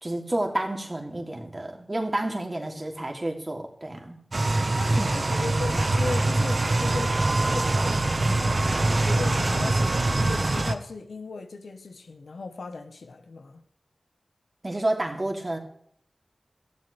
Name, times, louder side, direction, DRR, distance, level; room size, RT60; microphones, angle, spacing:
voice 1, 0.0-4.2 5.0-5.2 14.6-15.6, right 1 dB, 35° right, 3.1 m, -30 dB
sound 1, 4.3-10.7, right 2 dB, 55° right, 1.3 m, -23 dB
voice 2, 4.7-13.6, left 3 dB, 90° left, 1.3 m, -37 dB
19.0 x 13.5 x 3.5 m
cardioid pair, 40°, 0 cm